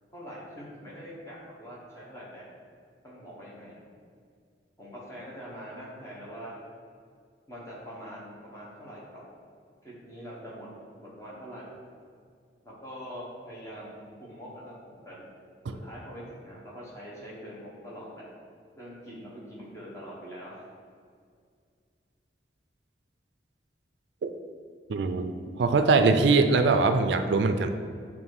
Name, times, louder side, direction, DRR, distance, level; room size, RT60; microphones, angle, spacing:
voice 1, 0.1-2.5 3.0-3.8 4.8-6.5 7.5-9.3 9.8-10.7 11.0-11.7 12.6-15.3 15.7-18.3 18.7-20.6, equal, 15° left, -6 dB, 1.3 m, -43 dB
voice 2, 24.9-27.7, right 3 dB, 80° right, 8 dB, 0.4 m, -22 dB
7.1 x 2.9 x 4.7 m, 2.1 s
head